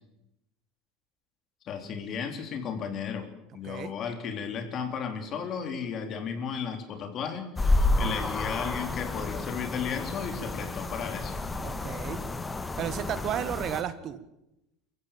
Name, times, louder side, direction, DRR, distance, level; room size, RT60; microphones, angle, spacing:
voice 1, 1.6-11.4, left 6 dB, 45° left, 6 dB, 3.8 m, -34 dB
voice 2, 3.6-3.9 11.6-12.2 12.8-14.2, right 10 dB, 45° right, 12 dB, 1.6 m, -33 dB
sound 1, 7.6-13.8, left 2 dB, 15° left, 1.6 m, -30 dB
24.0 x 14.5 x 7.6 m, 0.87 s
hypercardioid pair, 95°, 0 cm